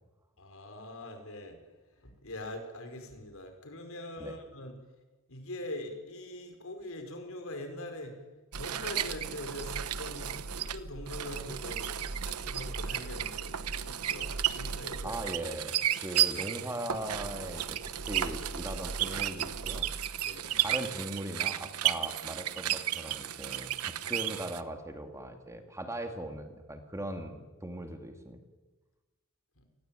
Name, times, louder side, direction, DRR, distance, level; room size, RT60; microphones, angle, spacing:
voice 1, 0.4-1.6 2.0-4.7 5.3-8.2 8.5-10.3 10.6-15.2 20.2-20.7 29.6-29.7, left 1 dB, 65° left, 6 dB, 5.3 m, -43 dB
sound 1, 8.5-24.6, right 10 dB, 90° right, 1.1 m, -33 dB
voice 2, 15.0-28.4, right 1 dB, 15° right, 6 dB, 2.3 m, -40 dB
29.0 x 20.0 x 9.1 m, 1.2 s
head